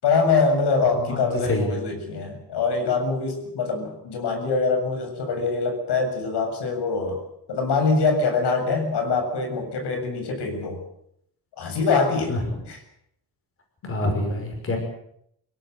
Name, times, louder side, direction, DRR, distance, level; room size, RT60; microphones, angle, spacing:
voice 1, 0.0-7.2 7.5-10.8 11.6-12.3 12.7-12.8 13.8-13.9, left 4 dB, 80° left, 5 dB, 7.5 m, -24 dB
voice 2, 1.1-1.8 12.3-12.4 13.8-14.8, left 2 dB, 35° left, 3 dB, 5.8 m, -26 dB
25.0 x 17.0 x 8.1 m, 0.73 s
cardioid pair, 160°, 40 cm